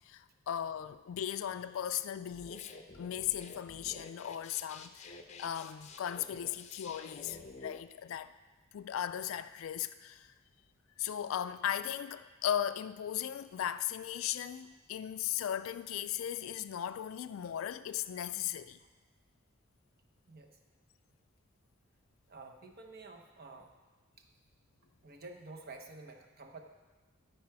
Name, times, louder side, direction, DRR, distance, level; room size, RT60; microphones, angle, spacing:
voice 1, 0.0-2.7 2.9-8.3 8.7-10.3 11.0-18.8, left 10 dB, 85° left, 0.3 m, -37 dB
sound 1, 2.3-7.8, left 3 dB, 35° left, 0.6 m, -50 dB
voice 2, 22.3-23.7 25.0-26.6, right 3 dB, 50° right, 1.0 m, -50 dB
14.5 x 4.9 x 4.7 m
head